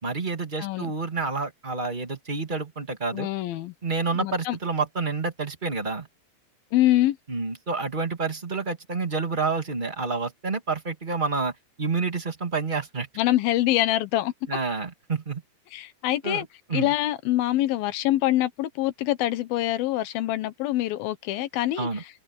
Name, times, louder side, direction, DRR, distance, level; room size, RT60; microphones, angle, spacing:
voice 1, 0.0-3.3 3.8-6.1 7.3-11.5 11.8-13.1 14.5-15.4 16.2-16.9 21.8-22.0, right 4 dB, 20° right, 1.4 m, -29 dB
voice 2, 0.6-0.9 3.1-3.7 4.2-4.6 6.7-7.2 13.2-14.3 15.7-16.5 16.7-21.9, left 15 dB, 70° left, 2.4 m, -25 dB
omnidirectional pair, 5.2 m